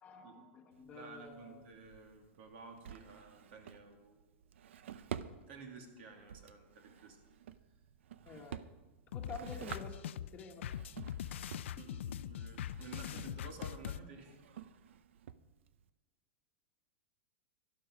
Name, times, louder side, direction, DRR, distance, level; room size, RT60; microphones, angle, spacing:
voice 1, 0.0-1.6 8.2-8.6 9.1-10.0 10.3-10.7, left 4 dB, 20° left, 3 dB, 1.3 m, -49 dB
Drawer open or close, 0.7-15.9, right 9 dB, 90° right, 0.6 m, -51 dB
voice 2, 0.9-4.3 5.5-7.2 11.8-14.4, right 4 dB, 65° right, 3 dB, 2.6 m, -52 dB
sound 1, 9.1-14.0, left 10 dB, 90° left, 0.4 m, -42 dB
12.0 x 12.0 x 5.1 m, 1.2 s
supercardioid pair, 160°, 6 cm